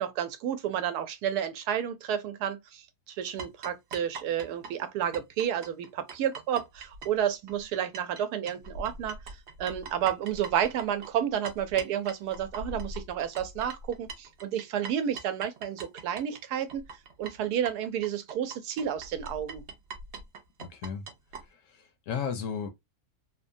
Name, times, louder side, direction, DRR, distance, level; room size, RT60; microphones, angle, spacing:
voice 1, 0.0-16.8 17.2-19.6, right 9 dB, 85° right, 1.1 m, -31 dB
sound 1, 3.4-8.2 8.5-21.4, right 3 dB, 60° right, 0.8 m, -42 dB
voice 2, 20.6-21.0 21.5-22.7, left 6 dB, 70° left, 0.8 m, -35 dB
3.0 x 2.2 x 2.5 m
omnidirectional pair, 1.6 m